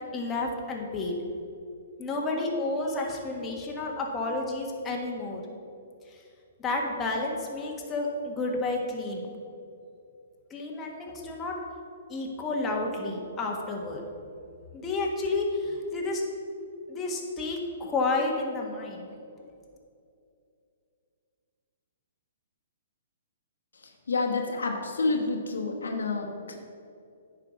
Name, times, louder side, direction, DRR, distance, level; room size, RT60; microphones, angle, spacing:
voice 1, 0.1-1.2 2.0-5.4 6.1-6.2 6.6-9.3 10.5-11.5 12.1-14.0 14.7-16.2 16.9-19.1, left 2 dB, 20° left, -1 dB, 1.5 m, -31 dB
voice 2, 24.1-26.6, left 3 dB, 85° left, 3 dB, 1.2 m, -29 dB
9.6 x 4.8 x 6.2 m, 2.5 s
hypercardioid pair, 130°, 0 cm